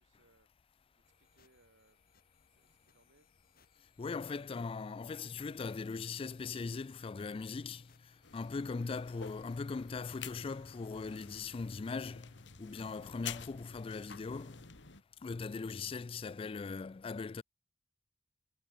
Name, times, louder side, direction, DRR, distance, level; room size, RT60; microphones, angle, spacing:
voice 1, 0.0-2.1 2.5-3.3, right 2 dB, 80° right, 5.2 m, -71 dB
sound 1, 1.0-11.0, left 6 dB, 55° left, 6.2 m, -71 dB
voice 2, 4.0-7.9 8.3-14.6 15.2-17.4, left 4 dB, 30° left, 0.3 m, -40 dB
sound 2, 8.2-15.0, left 8 dB, 75° left, 2.3 m, -50 dB
head